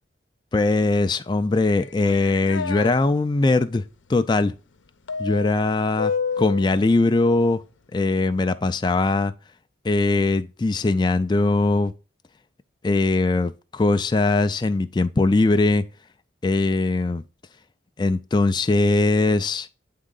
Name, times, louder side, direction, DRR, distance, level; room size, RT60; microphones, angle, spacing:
voice 1, 0.5-3.8 4.1-4.5 5.2-7.6 7.9-9.3 9.8-11.9 12.8-15.8 16.4-17.2 18.0-19.7, left 2 dB, 25° left, 0.3 m, -21 dB
sound 1, 1.6-2.9 5.1-6.7, left 5 dB, 85° left, 0.7 m, -29 dB
8.9 x 3.7 x 3.8 m
head